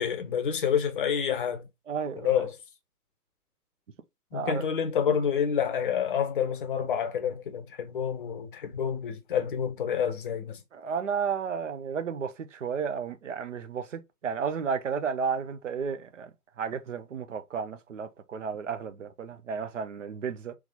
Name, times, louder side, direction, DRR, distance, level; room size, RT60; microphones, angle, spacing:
voice 1, 0.0-1.7 2.2-2.6 4.3-10.6, left 8 dB, 35° left, 0.7 m, -28 dB
voice 2, 1.9-2.3 4.3-4.6 10.7-16.3 16.6-20.6, right 6 dB, 50° right, 0.7 m, -32 dB
3.5 x 3.2 x 3.5 m
figure-of-eight pair, 125°, 48 cm